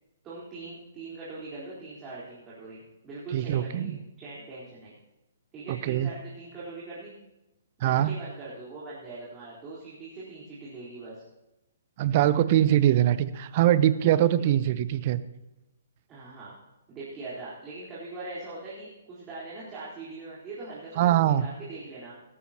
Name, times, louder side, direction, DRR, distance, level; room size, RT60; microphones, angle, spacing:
voice 1, 0.2-5.0 5.5-7.1 7.8-11.2 14.4-14.5 16.1-16.5 16.9-22.2, right 3 dB, 20° right, -9 dB, 4.2 m, -41 dB
voice 2, 3.3-4.0 5.8-6.1 7.8-8.1 12.0-15.2 21.0-21.4, right 12 dB, 40° right, 15 dB, 0.7 m, -22 dB
17.0 x 13.5 x 3.0 m, 0.98 s
figure-of-eight pair, 125°, 0 cm